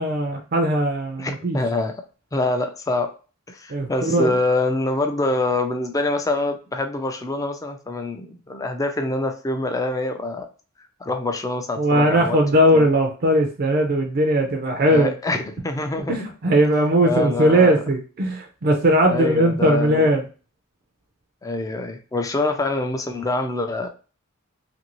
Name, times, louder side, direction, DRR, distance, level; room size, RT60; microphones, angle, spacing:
voice 1, 0.0-1.6 3.7-4.3 11.8-15.1 16.1-20.2, right 1 dB, 45° right, 2 dB, 0.5 m, -19 dB
voice 2, 1.2-1.9 2.3-3.1 3.5-10.5 11.0-12.4 12.7-12.9 14.9-16.2 17.0-17.8 19.1-20.1 21.4-23.9, left 2 dB, 15° left, 5 dB, 0.4 m, -25 dB
2.7 x 2.6 x 2.9 m, 0.35 s
head